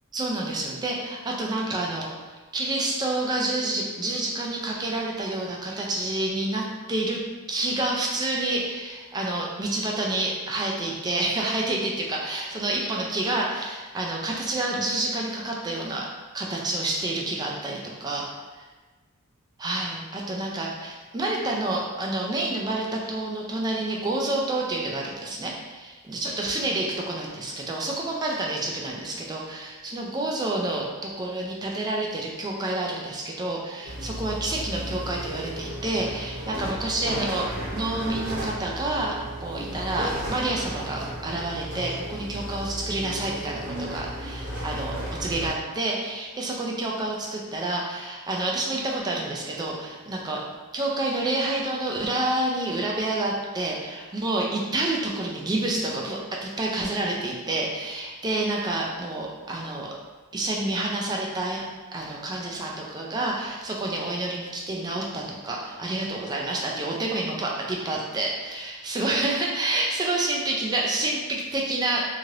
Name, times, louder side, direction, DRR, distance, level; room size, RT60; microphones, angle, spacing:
voice 1, 0.1-2.1 2.5-7.2 7.5-16.1 16.3-18.3 18.6-18.7 19.6-50.4 50.7-59.9 60.3-61.6 61.9-72.1, right 2 dB, 20° right, -2 dB, 0.3 m, -28 dB
sound 1, 33.8-45.5, equal, 50° right, 0.9 m, -34 dB
3.1 x 2.7 x 2.4 m, 1.3 s
head